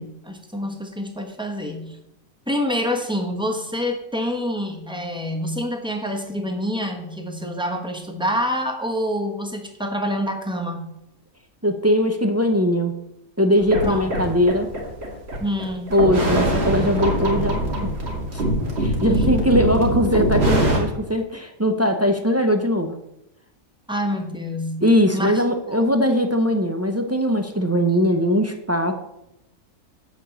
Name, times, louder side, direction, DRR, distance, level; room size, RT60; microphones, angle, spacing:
voice 1, 0.0-2.0 2.5-10.9 13.9-14.1 15.4-16.0 19.1-19.3 23.9-24.8 25.1-25.3 25.7-25.8, equal, 5° right, 3 dB, 1.0 m, -27 dB
voice 2, 11.6-12.9 13.4-14.7 15.9-17.9 18.3-18.4 18.8-22.9 24.8-28.9, equal, 20° right, 5 dB, 0.4 m, -20 dB
sound 1, 13.6-20.8, right 1 dB, 50° right, 2.2 m, -23 dB
7.4 x 5.3 x 7.2 m, 0.84 s
omnidirectional pair, 1.4 m